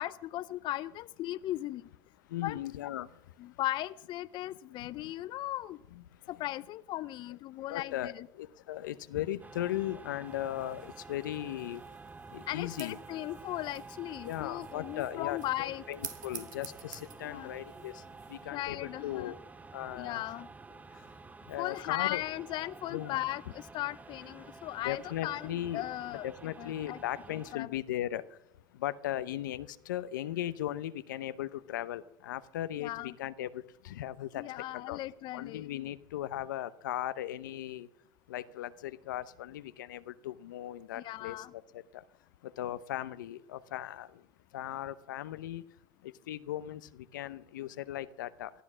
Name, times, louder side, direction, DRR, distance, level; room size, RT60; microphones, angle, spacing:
voice 1, 0.0-1.8 2.4-2.6 3.4-5.8 6.3-8.3 12.5-15.8 17.2-17.5 18.5-19.3 19.9-20.5 21.6-26.2 26.6-27.0 27.3-27.7 32.8-33.1 34.4-35.7 40.9-41.5, left 15 dB, 50° left, 16 dB, 0.5 m, -37 dB
voice 2, 2.3-3.1 5.0-5.1 5.9-6.0 7.7-8.1 8.4-11.8 12.3-13.0 14.3-18.0 18.3-19.4 19.7-20.2 21.5-22.2 22.9-23.2 24.8-28.2 28.8-34.4 34.9-35.0 35.3-37.9 38.3-41.4 41.7-42.0 42.6-44.1 44.5-45.6 46.0-48.5, left 13 dB, 85° left, 14 dB, 0.7 m, -37 dB
sound 1, 9.4-27.5, right 4 dB, 15° right, 0.6 m, -50 dB
sound 2, 10.2-18.4, right 9 dB, 85° right, 1.8 m, -51 dB
18.5 x 12.5 x 6.2 m, 0.81 s
hypercardioid pair, 90°, 10 cm